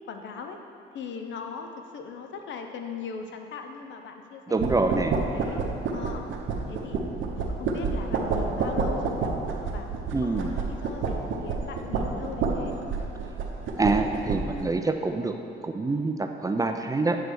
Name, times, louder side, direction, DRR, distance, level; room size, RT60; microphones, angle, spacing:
voice 1, 0.1-0.6 0.9-4.6 5.3-5.6 5.9-6.3 6.7-7.0 7.3-9.3 9.7-9.9 10.2-12.8, left 6 dB, 70° left, 4 dB, 0.7 m, -39 dB
voice 2, 4.5-5.2 10.1-10.5 13.8-15.3 15.6-17.2, right 3 dB, 20° right, 5 dB, 0.4 m, -26 dB
sound 1, 4.6-14.7, right 4 dB, 75° right, 0.8 m, -29 dB
8.0 x 3.2 x 6.1 m, 2.6 s
cardioid pair, 90°, 20 cm